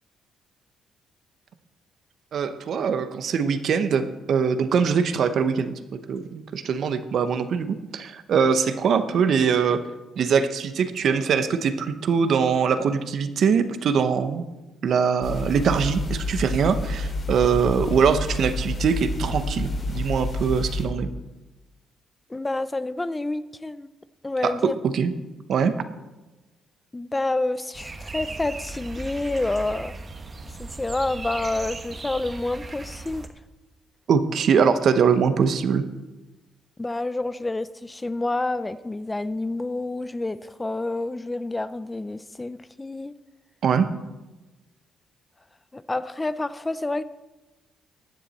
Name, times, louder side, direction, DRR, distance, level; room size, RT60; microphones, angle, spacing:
voice 1, 2.3-9.8 10.2-14.4 14.8-21.1 24.4-25.1 25.5-25.7 34.1-35.8 43.6-43.9, right 6 dB, 65° right, 10 dB, 0.9 m, -22 dB
sound 1, 15.2-20.8, left 2 dB, 45° left, 3.8 m, -29 dB
voice 2, 22.3-23.9 24.2-24.8 26.9-29.9 30.6-33.3 36.8-43.1 45.7-47.0, left 2 dB, 15° left, 15 dB, 0.5 m, -28 dB
sound 2, 27.7-33.3, right 3 dB, 30° right, 1.2 m, -37 dB
15.5 x 10.0 x 4.2 m, 1.1 s
cardioid pair, 90°, 0 cm